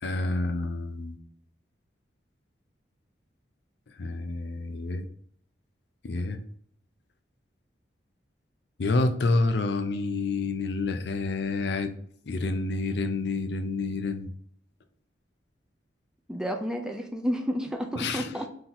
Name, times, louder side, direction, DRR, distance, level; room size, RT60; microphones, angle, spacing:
voice 1, 0.0-1.2 4.0-5.1 6.0-6.4 8.8-11.9 12.3-14.3 18.0-18.3, left 3 dB, 65° left, 7 dB, 0.5 m, -28 dB
voice 2, 16.3-18.5, equal, 5° right, 3 dB, 0.4 m, -31 dB
3.9 x 2.7 x 4.2 m, 0.64 s
head